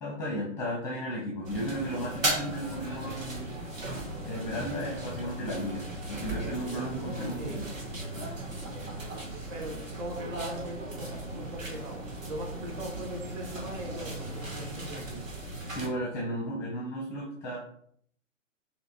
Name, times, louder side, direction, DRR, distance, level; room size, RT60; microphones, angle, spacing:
voice 1, 0.0-3.5 4.2-7.7 15.7-17.6, equal, 5° left, -4 dB, 0.6 m, -34 dB
sound 1, 1.4-15.9, right 2 dB, 75° right, 1.5 m, -37 dB
voice 2, 9.5-15.3, right 1 dB, 30° right, 0 dB, 1.2 m, -40 dB
6.4 x 2.8 x 2.8 m, 0.64 s
figure-of-eight pair, 125°, 40 cm